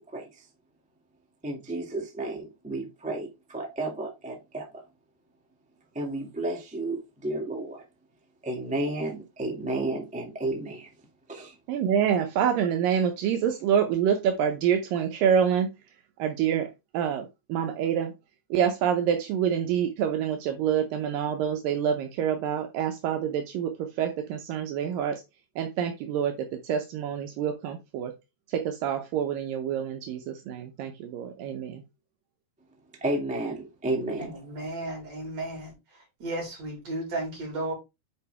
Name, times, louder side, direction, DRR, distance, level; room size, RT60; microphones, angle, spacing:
voice 1, 1.4-4.7 5.9-7.8 8.4-10.9 11.3-11.5 33.0-34.3, right 2 dB, 5° right, 1.2 m, -32 dB
voice 2, 11.7-15.7 16.2-16.7 16.9-18.1 18.5-25.2 25.6-28.1 28.5-31.8, right 8 dB, 75° right, 2.5 m, -27 dB
voice 3, 34.2-35.7 36.2-37.7, right 2 dB, 45° right, 5.5 m, -34 dB
9.9 x 5.0 x 3.4 m
omnidirectional pair, 4.1 m